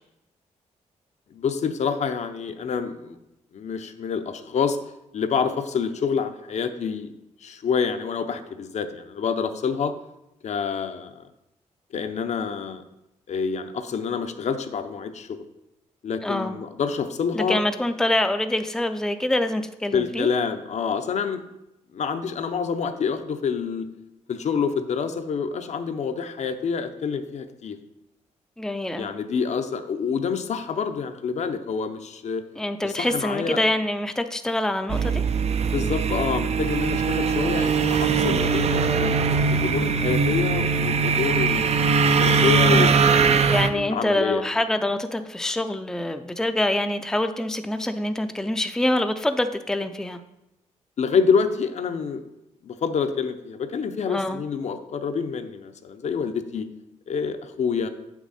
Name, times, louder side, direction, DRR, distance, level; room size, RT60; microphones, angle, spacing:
voice 1, 1.3-3.2 3.5-4.8 5.1-7.1 7.4-9.9 10.4-11.3 11.9-12.8 13.3-15.4 16.0-17.6 19.9-21.4 21.9-23.9 24.3-27.8 29.0-32.4 32.8-33.6 35.6-43.3 43.7-44.4 51.0-52.2 52.6-56.7 57.1-57.9, left 6 dB, 60° left, 8 dB, 0.7 m, -27 dB
voice 2, 16.2-16.6 17.3-20.3 28.6-29.2 32.6-35.3 43.5-50.2 54.1-54.5, left 1 dB, 5° left, 8 dB, 0.5 m, -25 dB
sound 1, 34.9-43.7, right 5 dB, 55° right, 0.6 m, -21 dB
7.2 x 6.1 x 4.2 m, 0.89 s
cardioid pair, 85°, 13 cm